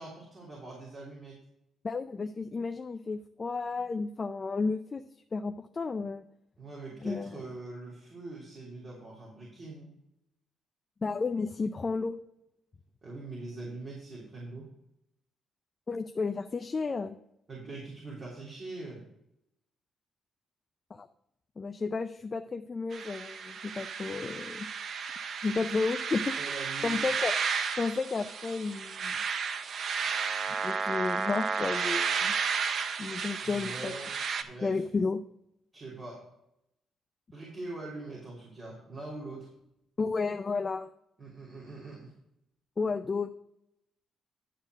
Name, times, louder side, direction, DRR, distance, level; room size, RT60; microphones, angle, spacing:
voice 1, 0.0-1.4 6.6-9.9 13.0-14.7 17.5-19.1 26.4-27.0 33.4-34.8 35.7-36.3 37.3-39.5 41.2-42.1, right 2 dB, 40° right, -5 dB, 3.2 m, -43 dB
voice 2, 1.8-5.0 5.3-6.2 7.0-7.4 11.0-12.2 15.9-17.2 20.9-21.1 21.6-24.7 25.4-26.3 26.8-27.3 27.8-29.1 30.6-32.3 33.0-33.9 34.6-35.2 40.0-40.9 42.8-43.3, left 4 dB, 35° left, 8 dB, 0.5 m, -32 dB
sound 1, 22.9-34.4, right 6 dB, 55° right, 0.7 m, -33 dB
11.5 x 4.4 x 6.2 m, 0.81 s
cardioid pair, 90°, 0 cm